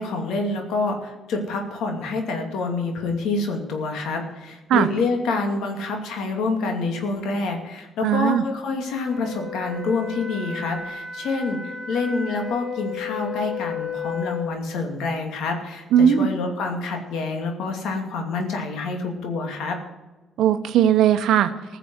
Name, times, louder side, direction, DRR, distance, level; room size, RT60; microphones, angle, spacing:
voice 1, 0.0-19.8, left 3 dB, 85° left, 3 dB, 2.5 m, -27 dB
voice 2, 8.0-8.4 15.9-16.3 20.4-21.5, right 9 dB, 80° right, 10 dB, 0.8 m, -18 dB
Wind instrument woodwind instrument, 9.1-14.5, left 6 dB, 15° left, 4.5 m, -33 dB
15.5 x 6.9 x 7.7 m, 1.2 s
cardioid pair, 90°, 0 cm